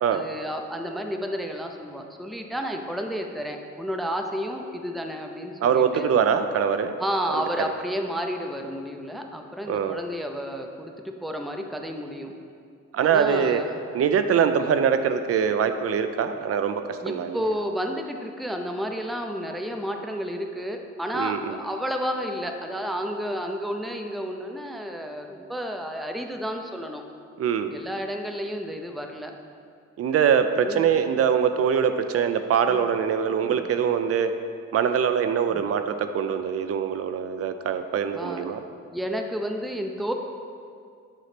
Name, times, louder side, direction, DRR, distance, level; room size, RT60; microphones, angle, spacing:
voice 1, 0.1-6.1 7.0-12.3 13.0-13.8 14.3-14.6 17.0-27.0 27.7-29.3 30.6-30.9 32.7-32.9 33.4-33.6 35.5-35.6 38.1-38.5 38.9-40.1, equal, ahead, 4 dB, 0.5 m, -31 dB
voice 2, 5.6-6.9 7.3-7.4 9.7-10.0 12.9-13.6 13.9-17.4 21.1-21.6 27.4-27.7 30.0-34.3 34.7-38.6, right 7 dB, 50° right, 9 dB, 0.5 m, -23 dB
8.2 x 3.1 x 5.9 m, 2.3 s
cardioid pair, 90°, 30 cm